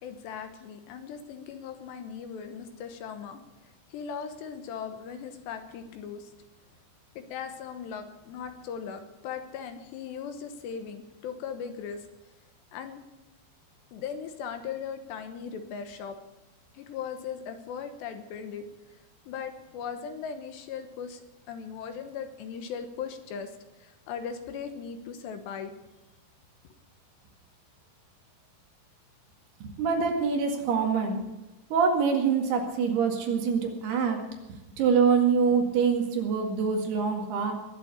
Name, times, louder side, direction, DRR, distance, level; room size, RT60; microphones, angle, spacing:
voice 1, 0.0-6.3 7.2-12.1 12.7-13.0 13.9-16.2 16.7-18.6 18.9-19.0 19.3-21.2 21.5-23.5 23.8-25.7, left 7 dB, 75° left, 8 dB, 3.2 m, -38 dB
voice 2, 29.6-31.2 31.7-34.2 34.8-37.5, right 6 dB, 65° right, 3 dB, 3.8 m, -25 dB
21.0 x 7.6 x 8.2 m, 1.0 s
omnidirectional pair, 5.4 m